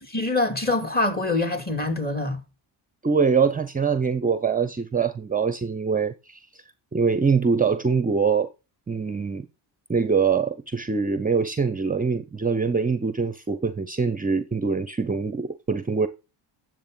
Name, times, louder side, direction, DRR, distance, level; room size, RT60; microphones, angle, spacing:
voice 1, 0.1-2.4, left 2 dB, 20° left, 2.4 m, -25 dB
voice 2, 3.0-6.6 6.9-8.5 8.9-9.5 9.9-16.1, right 5 dB, 20° right, 0.7 m, -24 dB
10.0 x 7.6 x 3.8 m
cardioid pair, 105°, 46 cm